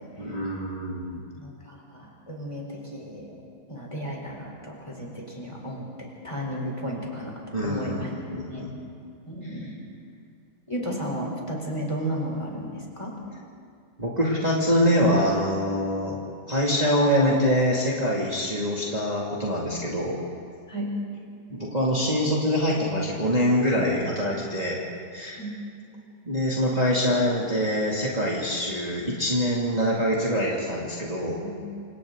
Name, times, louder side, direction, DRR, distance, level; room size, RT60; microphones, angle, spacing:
voice 1, 0.2-1.2 7.5-8.7 9.5-9.6 14.0-16.2 16.5-20.2 21.5-24.8 25.1-25.4 26.2-31.4, equal, 20° right, -5 dB, 2.7 m, -24 dB
voice 2, 1.4-3.4 3.7-8.1 8.5-8.7 9.3-9.8 10.7-13.2 20.7-21.0 25.4-25.5 31.4-31.6, equal, 15° left, -2 dB, 4.2 m, -34 dB
28.5 x 27.0 x 4.0 m, 2.4 s
omnidirectional pair, 2.0 m